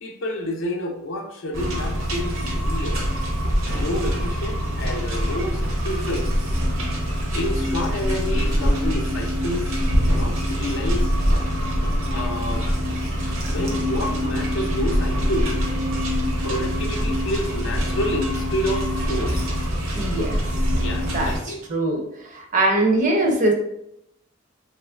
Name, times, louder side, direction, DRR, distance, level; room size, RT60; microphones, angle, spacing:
voice 1, 0.0-3.0 3.7-6.3 7.3-9.7 10.1-11.1 12.1-12.7 13.5-15.7 16.4-19.4 20.8-21.6, left 1 dB, 65° left, 2 dB, 0.5 m, -29 dB
sound 1, 1.5-21.4, equal, 75° right, 0.8 m, -24 dB
voice 2, 19.9-20.4 21.0-22.0 22.3-23.5, right 2 dB, 40° right, 1 dB, 0.5 m, -22 dB
3.0 x 2.4 x 2.2 m, 0.79 s
head